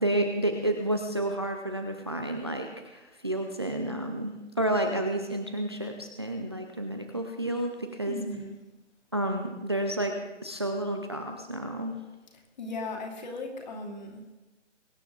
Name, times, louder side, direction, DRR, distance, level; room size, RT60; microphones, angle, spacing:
voice 1, 0.0-8.2 9.1-10.2 10.4-12.0, right 1 dB, 20° right, 4 dB, 0.6 m, -30 dB
voice 2, 8.1-8.5 12.6-14.3, left 2 dB, 35° left, 2 dB, 2.9 m, -37 dB
22.5 x 9.7 x 4.0 m, 1.1 s
hypercardioid pair, 170°, 36 cm